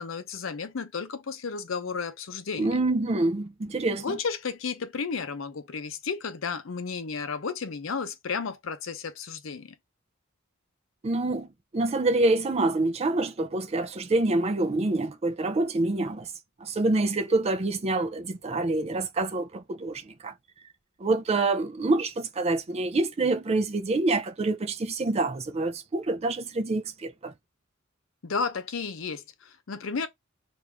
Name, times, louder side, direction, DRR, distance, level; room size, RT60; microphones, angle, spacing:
voice 1, 0.0-2.8 4.0-9.8 28.2-30.1, left 5 dB, 70° left, 0.6 m, -33 dB
voice 2, 2.6-4.2 11.0-11.5 11.7-16.3 16.6-20.3 21.0-27.3, right 2 dB, 30° right, 0.4 m, -26 dB
3.5 x 2.6 x 2.9 m
head